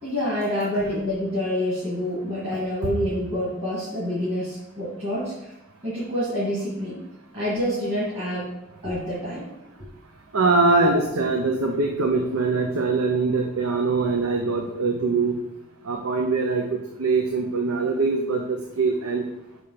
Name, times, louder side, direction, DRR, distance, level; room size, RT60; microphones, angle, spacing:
voice 1, 0.0-5.5 5.8-7.0 7.3-8.5 8.8-9.5 10.8-10.9, left 1 dB, 25° right, -9 dB, 2.1 m, -27 dB
voice 2, 10.3-15.4 15.8-19.2, right 3 dB, 85° right, 2 dB, 0.8 m, -23 dB
5.5 x 5.1 x 5.8 m, 0.92 s
head